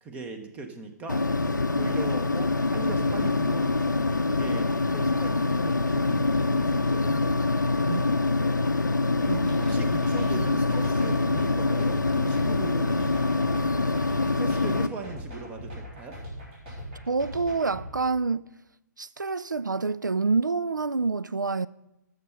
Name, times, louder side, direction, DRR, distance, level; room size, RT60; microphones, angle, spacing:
voice 1, 0.0-7.4 9.6-13.5 14.0-16.2, right 3 dB, 15° right, 0.9 m, -40 dB
sound 1, 1.1-14.9, left 3 dB, 80° left, 0.6 m, -25 dB
sound 2, 9.2-17.9, equal, 35° right, 4.7 m, -40 dB
voice 2, 9.3-9.7 17.1-18.4 19.0-21.7, right 4 dB, 80° right, 0.3 m, -27 dB
13.0 x 6.5 x 5.6 m
figure-of-eight pair, 130°, 10 cm